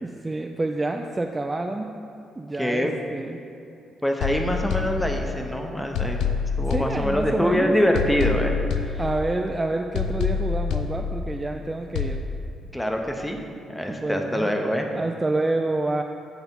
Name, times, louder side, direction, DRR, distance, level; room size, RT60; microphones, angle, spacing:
voice 1, 0.0-1.9 2.4-3.4 6.7-7.7 9.0-12.2 13.9-14.5 14.9-16.0, right 2 dB, 20° right, 4 dB, 0.3 m, -28 dB
voice 2, 2.6-3.0 4.0-6.2 6.6-8.6 8.9-9.0 11.5-11.6 12.7-13.4 13.7-14.9, equal, 5° left, 3 dB, 0.7 m, -24 dB
sound 1, 4.2-5.5 5.9-7.5 7.9-9.5 9.9-11.5 11.9-12.2, left 6 dB, 90° left, 0.4 m, -27 dB
8.0 x 3.5 x 5.3 m, 2.7 s
cardioid pair, 90°, 0 cm